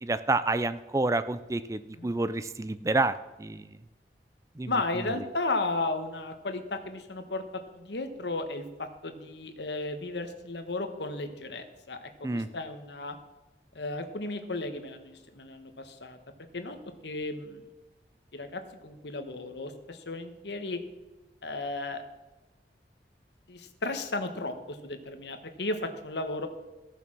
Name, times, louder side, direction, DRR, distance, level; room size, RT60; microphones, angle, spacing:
voice 1, 0.0-3.7 4.6-4.7 12.2-12.5, right 2 dB, 20° right, 13 dB, 0.4 m, -29 dB
voice 2, 4.7-13.2 13.7-16.2 16.5-16.8 17.0-17.6 18.3-20.8 21.4-22.0 23.5-26.5, left 2 dB, 80° left, 7 dB, 1.3 m, -34 dB
15.0 x 7.0 x 6.0 m, 1.1 s
head